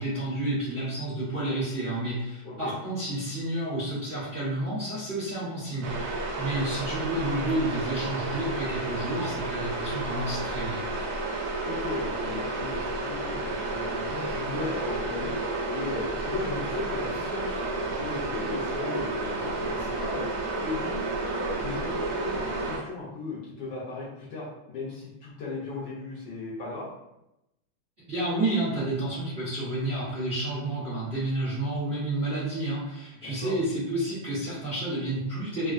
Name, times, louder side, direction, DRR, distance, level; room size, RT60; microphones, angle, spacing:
voice 1, 0.0-10.8 28.1-35.7, right 1 dB, 40° right, -11 dB, 1.0 m, -30 dB
voice 2, 2.4-2.7 8.8-9.3 11.6-20.3 20.6-21.0 21.3-26.9 33.2-33.5, left 3 dB, 70° left, -7 dB, 1.1 m, -37 dB
sound 1, 5.8-22.8, right 2 dB, 80° right, 0.9 m, -31 dB
3.4 x 2.1 x 2.4 m, 0.89 s
omnidirectional pair, 2.3 m